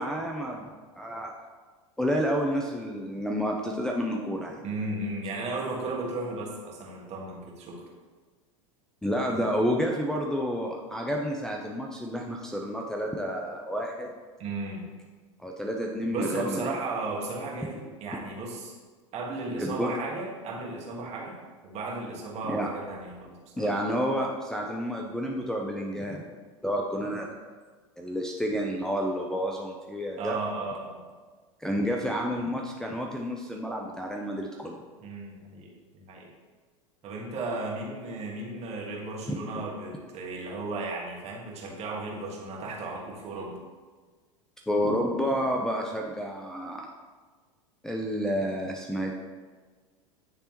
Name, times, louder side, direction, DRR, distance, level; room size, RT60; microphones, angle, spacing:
voice 1, 0.0-1.3 2.0-4.6 9.0-14.1 15.4-16.7 19.6-19.9 22.5-22.7 23.6-26.3 26.6-27.3 28.0-30.4 31.6-34.8 39.3-39.4 44.7-46.9 47.8-49.1, equal, 5° left, -1 dB, 0.5 m, -30 dB
voice 2, 4.6-7.8 9.3-9.4 14.4-14.9 16.1-18.7 19.1-23.7 30.2-31.0 35.0-36.3 37.0-43.6, right 2 dB, 40° right, -1 dB, 1.5 m, -35 dB
9.7 x 3.3 x 3.0 m, 1.4 s
hypercardioid pair, 95°, 17 cm